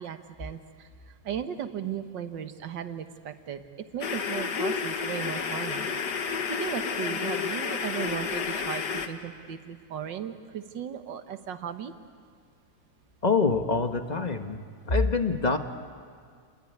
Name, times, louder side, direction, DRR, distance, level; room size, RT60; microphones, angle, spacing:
voice 1, 0.0-5.8 6.5-11.9, right 8 dB, 80° right, 8 dB, 1.9 m, -36 dB
sound 1, 4.0-9.1, left 6 dB, 65° left, 1.9 m, -30 dB
voice 2, 13.2-14.6 14.9-15.6, left 4 dB, 25° left, 6 dB, 1.3 m, -25 dB
29.5 x 21.0 x 9.5 m, 2.1 s
omnidirectional pair, 1.9 m